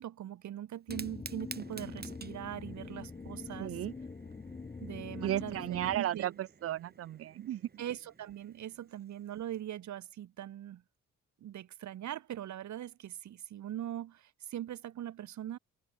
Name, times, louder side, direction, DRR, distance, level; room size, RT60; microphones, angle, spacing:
voice 1, 0.0-3.8 4.8-6.3 7.8-10.8 11.4-15.6, right 11 dB, 70° right, 2.5 m, -41 dB
Fire, 0.7-9.6, right 4 dB, 30° right, 6.1 m, -52 dB
sound 1, 0.9-6.0, left 4 dB, 20° left, 0.8 m, -44 dB
voice 2, 3.6-3.9 5.2-7.7, right 12 dB, 50° right, 0.5 m, -34 dB
open air
cardioid pair, 90°, 30 cm